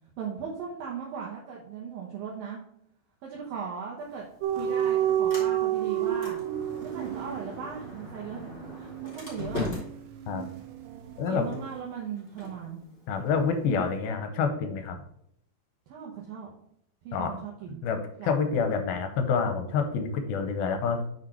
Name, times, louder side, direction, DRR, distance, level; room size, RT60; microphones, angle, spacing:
voice 1, 0.2-2.6 3.2-4.2 4.5-6.4 6.8-8.5 8.8-9.7 11.3-12.8 15.9-16.5 17.0-17.8 18.2-18.5, right 6 dB, 70° right, -3 dB, 2.8 m, -38 dB
Sliding door, 4.0-14.0, left 2 dB, 20° left, 3.2 m, -42 dB
sound 1, 4.4-11.2 11.5-11.7, right 11 dB, 90° right, 1.9 m, -30 dB
voice 2, 13.1-15.0 17.1-17.4 17.8-18.0 18.2-21.0, left 5 dB, 75° left, 7 dB, 2.5 m, -27 dB
6.6 x 6.3 x 4.6 m, 0.71 s
omnidirectional pair, 4.6 m